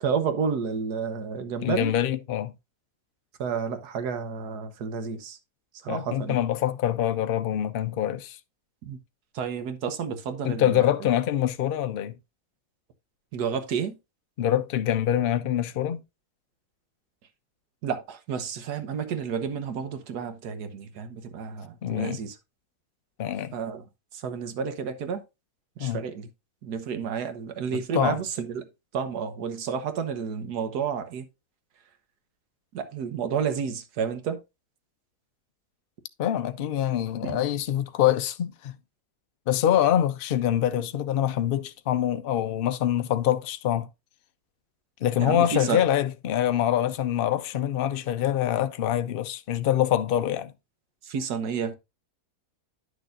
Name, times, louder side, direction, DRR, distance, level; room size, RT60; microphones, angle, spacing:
voice 1, 0.0-1.9 3.4-5.4 5.8-6.4 8.8-9.0 9.3-10.8 13.3-14.0 17.8-22.3 23.5-23.8 24.2-25.2 25.8-26.3 26.6-28.7 28.9-31.3 32.7-34.4 37.2-37.4 45.2-45.8 51.1-51.7, right 6 dB, 80° right, 1.6 m, -30 dB
voice 2, 1.6-2.5 5.9-8.4 10.4-12.2 14.4-16.0 21.8-22.3 23.2-23.5 25.8-26.0 27.7-28.2 36.2-38.7 39.5-43.9 45.0-50.5, left 11 dB, 85° left, 0.5 m, -25 dB
10.5 x 6.3 x 2.5 m
omnidirectional pair, 1.7 m